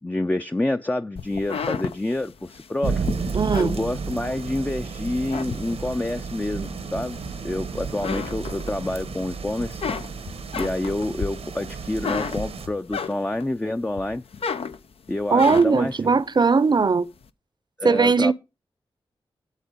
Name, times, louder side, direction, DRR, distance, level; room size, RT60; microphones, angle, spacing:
voice 1, 0.0-3.0 3.6-9.8 10.5-14.2 15.1-16.1 17.8-18.3, left 1 dB, 15° left, 0.4 m, -28 dB
sound 1, 1.2-4.6 5.0-6.1 6.6-7.6 7.9-9.2 9.5-13.5 13.9-15.9, left 6 dB, 75° left, 0.6 m, -32 dB
sound 2, 2.8-12.7, right 5 dB, 85° right, 1.1 m, -32 dB
voice 2, 3.3-3.8 15.3-17.1 17.8-18.3, right 4 dB, 45° right, 0.6 m, -19 dB
8.3 x 6.9 x 5.1 m
cardioid pair, 45°, 10 cm